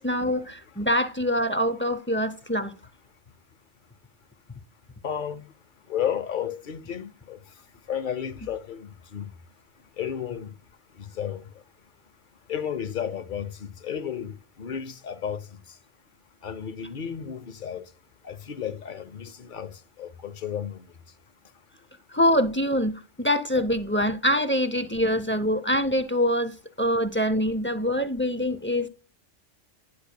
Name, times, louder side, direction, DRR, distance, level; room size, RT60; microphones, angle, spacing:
voice 1, 0.0-2.7 22.1-22.9 23.2-28.9, equal, 20° left, 0.3 m, -24 dB
voice 2, 5.0-5.4 5.9-7.4 7.9-9.3 10.0-10.5 11.1-11.4 12.5-15.5 16.4-17.8 18.2-20.9, left 8 dB, 50° left, 0.8 m, -32 dB
10.0 x 6.5 x 2.2 m
omnidirectional pair, 1.3 m